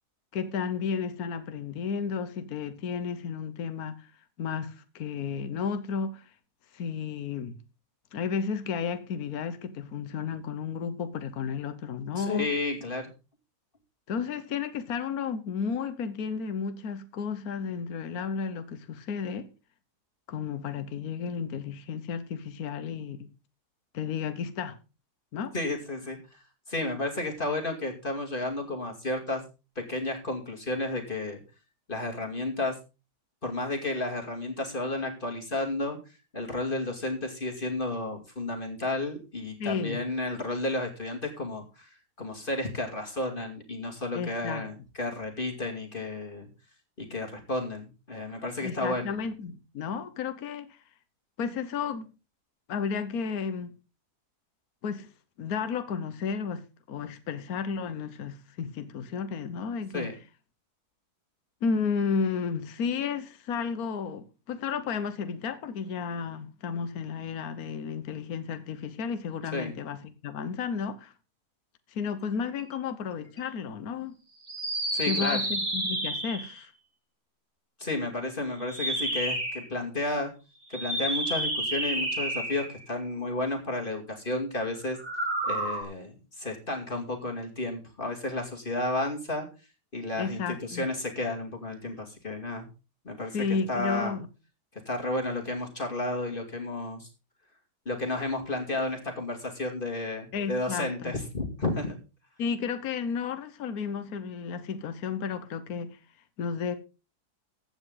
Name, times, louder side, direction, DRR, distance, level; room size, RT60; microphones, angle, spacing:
voice 1, 0.3-4.1 4.4-6.3 6.7-7.5 8.1-12.5 14.1-19.5 20.3-23.3 23.9-24.8 25.3-25.5 39.6-40.1 44.1-44.6 48.6-50.8 51.4-52.1 52.7-53.7 54.8-55.1 55.4-60.1 61.6-71.1 71.9-74.2 75.1-76.7 90.2-90.9 93.3-94.3 100.3-101.1 102.4-106.0 106.4-106.8, left 6 dB, 65° left, 1.5 m, -33 dB
voice 2, 12.1-13.0 25.5-26.4 26.7-29.4 29.8-31.4 31.9-32.8 33.4-36.0 36.3-46.5 47.0-49.1 59.9-60.2 69.5-69.7 74.9-75.4 77.8-80.3 80.7-85.0 85.4-89.5 89.9-92.7 93.0-94.2 94.9-97.1 97.9-102.0, left 2 dB, 30° left, 2.6 m, -32 dB
sound 1, 74.4-76.6 78.6-79.7 80.7-82.8 84.9-85.8, right 1 dB, 25° right, 2.8 m, -30 dB
15.5 x 8.9 x 3.9 m
omnidirectional pair, 1.7 m